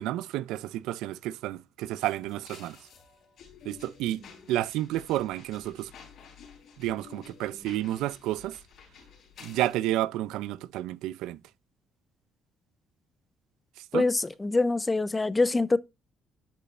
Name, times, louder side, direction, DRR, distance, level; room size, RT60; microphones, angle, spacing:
voice 1, 0.0-2.8 3.7-4.2 4.5-5.9 6.8-8.6 9.4-11.4 13.9-14.1, right 14 dB, 85° right, 0.4 m, -31 dB
sound 1, 2.0-9.7, left 6 dB, 65° left, 3.9 m, -51 dB
voice 2, 13.9-15.8, left 3 dB, 20° left, 0.5 m, -25 dB
10.0 x 5.4 x 2.4 m
cardioid pair, 95°, 0 cm